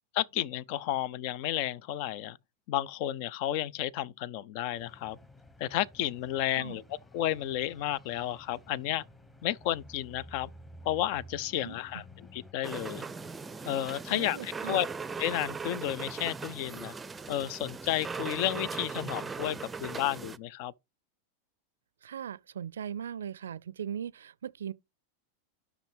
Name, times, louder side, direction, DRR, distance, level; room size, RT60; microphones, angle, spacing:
voice 1, 0.1-2.4 2.7-5.2 5.6-6.8 7.1-9.0 9.4-10.5 10.8-12.0 12.3-13.0 13.7-14.9 15.2-17.0 17.3-20.7, left 12 dB, 50° left, 0.5 m, -32 dB
sound 1, 4.7-12.5, equal, 10° left, 1.2 m, -53 dB
sound 2, 12.6-20.4, right 4 dB, 15° right, 0.6 m, -39 dB
voice 2, 14.1-14.9 22.0-24.7, right 8 dB, 65° right, 0.4 m, -39 dB
12.5 x 6.1 x 3.5 m
figure-of-eight pair, 90°, 0 cm